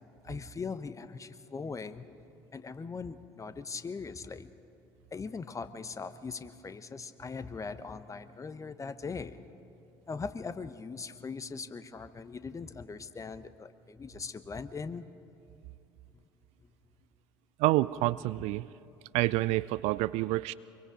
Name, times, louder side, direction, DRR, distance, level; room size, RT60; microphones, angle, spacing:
voice 1, 0.2-2.1 2.5-4.5 5.1-9.4 10.1-15.0, left 4 dB, 25° left, 12 dB, 1.0 m, -40 dB
voice 2, 17.6-18.7 19.1-20.5, right 19 dB, 55° right, 18 dB, 0.4 m, -28 dB
25.5 x 23.0 x 5.2 m, 2.7 s
figure-of-eight pair, 60°, 13 cm